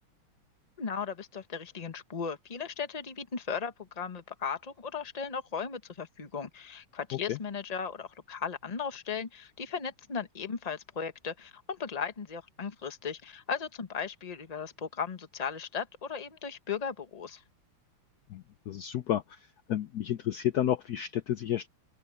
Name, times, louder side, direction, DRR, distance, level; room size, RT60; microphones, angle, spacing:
voice 1, 0.8-17.4, left 6 dB, 25° left, 0.9 m, -36 dB
voice 2, 18.3-21.7, left 11 dB, 80° left, 0.8 m, -31 dB
open air
omnidirectional pair, 2.4 m